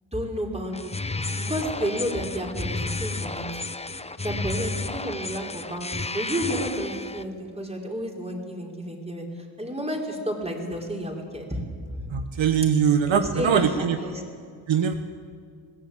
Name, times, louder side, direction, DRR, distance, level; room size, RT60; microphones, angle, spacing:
voice 1, 0.1-1.0 1.3-3.5 4.2-9.3 9.6-11.6 11.8-12.2 13.1-14.2, equal, 15° right, 0 dB, 4.8 m, -31 dB
sound 1, 0.7-7.2, left 3 dB, 15° left, 0.8 m, -32 dB
voice 2, 12.1-14.0 14.7-15.0, right 7 dB, 70° right, 7 dB, 1.3 m, -22 dB
21.5 x 16.0 x 8.7 m, 2.1 s
cardioid pair, 65°, 47 cm